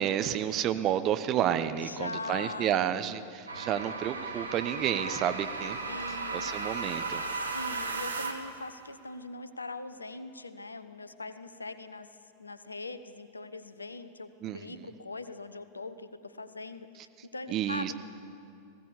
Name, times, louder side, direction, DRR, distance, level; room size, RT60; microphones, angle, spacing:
voice 1, 0.0-5.8 6.3-7.2 14.4-14.9 17.5-17.9, right 10 dB, 35° right, 10 dB, 1.0 m, -30 dB
voice 2, 1.8-2.8 4.7-5.3 5.8-6.5 7.3-12.1 12.4-16.9 17.3-17.9, left 3 dB, 80° left, 12 dB, 0.9 m, -41 dB
sound 1, 3.5-8.6, right 3 dB, 75° right, 1.5 m, -35 dB
19.5 x 16.5 x 8.3 m, 2.4 s
figure-of-eight pair, 90°, 0 cm